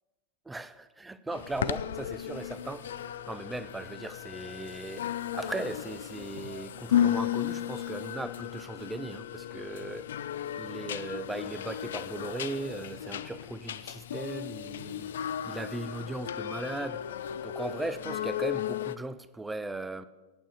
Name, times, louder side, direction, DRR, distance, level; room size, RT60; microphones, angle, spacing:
voice 1, 0.5-5.1 5.3-10.1 10.6-15.1 15.4-17.0 17.4-20.0, right 2 dB, 10° right, 0.5 m, -38 dB
sound 1, 1.3-19.0, left 10 dB, 60° left, 0.4 m, -35 dB
9.2 x 8.7 x 6.7 m
figure-of-eight pair, 90°, 0 cm